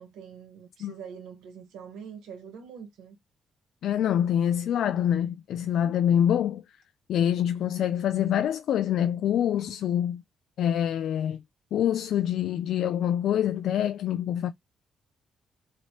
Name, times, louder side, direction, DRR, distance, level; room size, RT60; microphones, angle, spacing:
voice 1, 0.0-3.2, right 7 dB, 85° right, 1.2 m, -44 dB
voice 2, 3.8-6.6 7.1-10.2 10.6-11.4 11.7-14.5, left 10 dB, 75° left, 0.3 m, -25 dB
2.9 x 2.8 x 3.0 m
cardioid pair, 90°, 0 cm